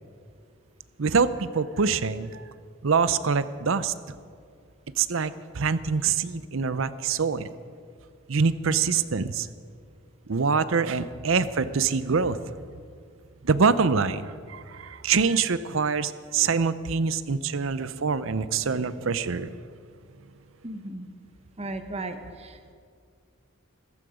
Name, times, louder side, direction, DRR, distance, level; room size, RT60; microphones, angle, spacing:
voice 1, 1.0-2.4 2.8-3.9 5.0-7.5 8.3-9.5 10.3-12.4 13.4-19.5, right 5 dB, 65° right, 14 dB, 0.6 m, -25 dB
voice 2, 20.6-21.1 21.6-22.7, right 2 dB, 30° right, 7 dB, 0.9 m, -36 dB
17.0 x 14.5 x 5.0 m, 2.2 s
head